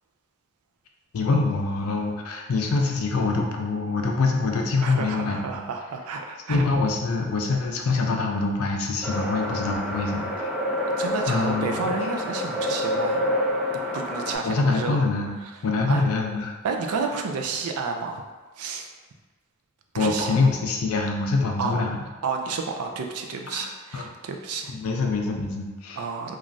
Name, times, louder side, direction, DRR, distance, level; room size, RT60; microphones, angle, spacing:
voice 1, 1.1-5.6 6.5-10.5 11.3-11.7 14.4-15.4 15.6-16.5 20.0-22.0 23.5-24.0 24.7-26.0, left 3 dB, 75° left, 2 dB, 0.4 m, -25 dB
voice 2, 4.8-6.6 11.0-13.4 13.9-15.0 15.9-16.0 16.6-18.2 18.6-18.9 19.9-20.3 21.6-21.8 22.2-24.8 26.0-26.4, right 4 dB, 85° right, 3 dB, 0.4 m, -30 dB
sound 1, 9.0-14.3, left 1 dB, ahead, 0.4 m, -28 dB
3.1 x 2.3 x 2.5 m, 1.3 s
head